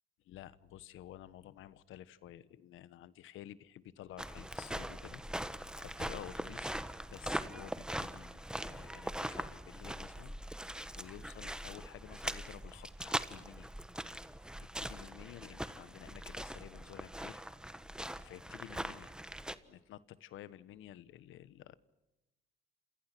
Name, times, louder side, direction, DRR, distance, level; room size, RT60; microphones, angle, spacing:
voice 1, 0.2-6.8 7.1-13.7 14.6-17.4 18.2-19.2 19.6-21.8, left 12 dB, 85° left, 16 dB, 1.2 m, -52 dB
sound 1, 4.2-19.5, right 1 dB, 5° right, 1.3 m, -42 dB
29.5 x 27.0 x 6.1 m, 0.98 s
cardioid pair, 90°, 20 cm